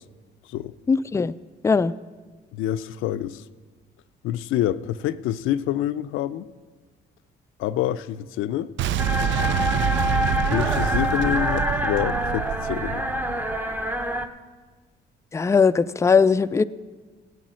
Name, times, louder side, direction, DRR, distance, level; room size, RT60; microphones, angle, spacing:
voice 1, 0.9-1.3 1.6-1.9 15.3-16.6, left 5 dB, 15° left, 14 dB, 0.3 m, -19 dB
voice 2, 2.5-3.4 4.2-6.5 7.6-8.7 10.4-13.0, left 12 dB, 90° left, 13 dB, 0.5 m, -27 dB
Boom, 8.8-13.7, right 10 dB, 70° right, 0.4 m, -26 dB
sound 1, 9.0-14.3, left 1 dB, 10° right, 0.8 m, -26 dB
14.0 x 8.4 x 6.2 m, 1.4 s
cardioid pair, 90°, 20 cm